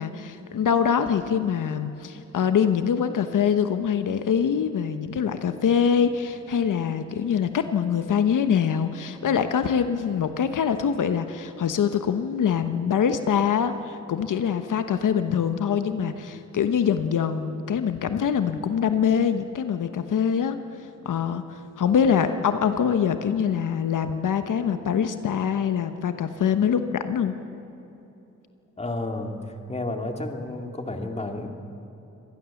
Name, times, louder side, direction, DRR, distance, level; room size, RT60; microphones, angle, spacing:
voice 1, 0.0-20.6 21.0-27.3, left 7 dB, 85° left, 9 dB, 1.1 m, -24 dB
voice 2, 28.8-31.5, left 2 dB, 20° left, 4 dB, 2.3 m, -31 dB
25.0 x 19.0 x 7.1 m, 3.0 s
wide cardioid pair, 105°, 31 cm